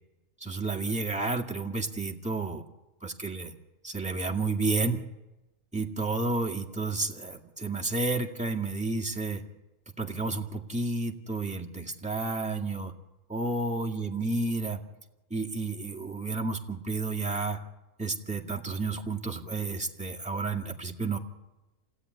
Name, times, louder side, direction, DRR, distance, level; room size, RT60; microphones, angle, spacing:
voice 1, 0.4-2.6 3.0-3.5 3.8-5.0 5.7-9.4 10.0-12.9 13.3-14.8 15.3-17.6 18.0-21.2, right 3 dB, 5° right, -2 dB, 1.9 m, -31 dB
27.5 x 16.5 x 9.6 m, 1.1 s
omnidirectional pair, 1.5 m